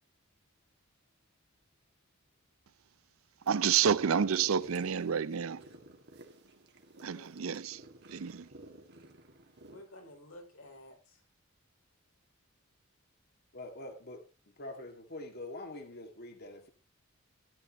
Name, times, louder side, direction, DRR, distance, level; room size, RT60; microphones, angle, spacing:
sound 1, 3.4-9.8, right 2 dB, 55° right, 1.9 m, -54 dB
voice 1, 3.5-5.6 7.0-7.8 8.1-8.5, right 7 dB, 75° right, 0.5 m, -29 dB
voice 2, 4.6-5.8 7.0-7.4 9.7-11.2, left 1 dB, 85° left, 4.8 m, -54 dB
voice 3, 13.5-14.2 14.6-16.7, left 2 dB, 50° left, 1.9 m, -44 dB
14.0 x 11.0 x 3.0 m
head